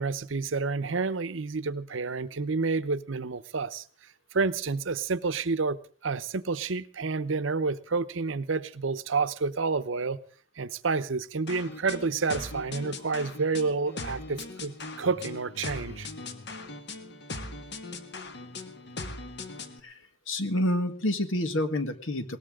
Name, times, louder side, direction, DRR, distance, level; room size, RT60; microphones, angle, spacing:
voice 1, 0.0-3.8 4.3-5.8 6.0-10.2 10.6-16.1, right 4 dB, 75° right, 0.8 m, -29 dB
sound 1, 11.5-19.8, left 2 dB, 60° left, 1.6 m, -40 dB
voice 2, 19.8-22.4, left 1 dB, 85° left, 1.7 m, -29 dB
21.0 x 18.5 x 3.7 m
head